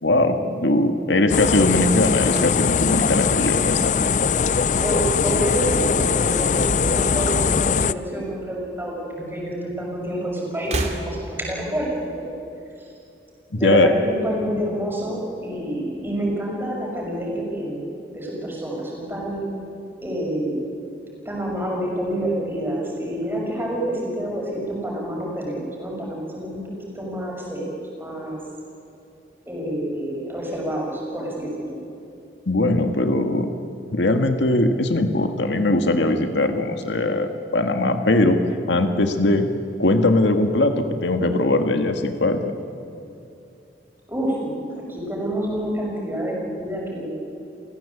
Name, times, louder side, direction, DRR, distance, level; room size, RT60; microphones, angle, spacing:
voice 1, 0.0-4.2 13.5-13.9 32.5-33.5 33.9-38.4 38.7-39.5 39.8-42.6, left 2 dB, 80° left, 7 dB, 1.6 m, -20 dB
sound 1, 1.3-7.9, left 6 dB, 40° left, 0.5 m, -21 dB
sound 2, 2.3-4.6 4.9-5.5 6.5-7.6 7.8-7.9 9.1-9.2 10.5-11.6, right 2 dB, 40° right, 2.3 m, -33 dB
voice 2, 4.8-12.3 13.5-17.8 18.1-19.5 20.0-20.6 21.2-26.6 26.9-27.6 28.0-28.4 29.5-31.8 44.1-44.5 44.9-47.1, right 1 dB, 10° right, -2 dB, 6.2 m, -27 dB
30.0 x 16.5 x 8.3 m, 2.7 s
head